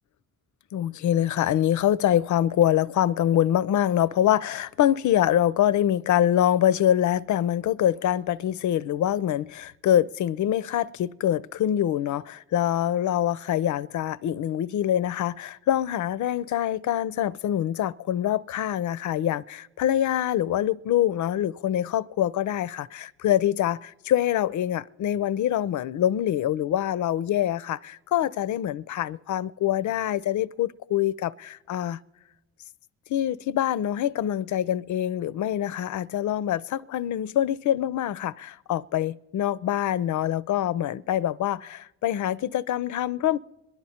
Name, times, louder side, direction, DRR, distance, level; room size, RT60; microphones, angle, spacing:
voice 1, 0.7-32.0 33.1-43.4, left 11 dB, 55° left, 0.5 m, -25 dB
26.5 x 10.5 x 4.3 m
hypercardioid pair, 45°, 36 cm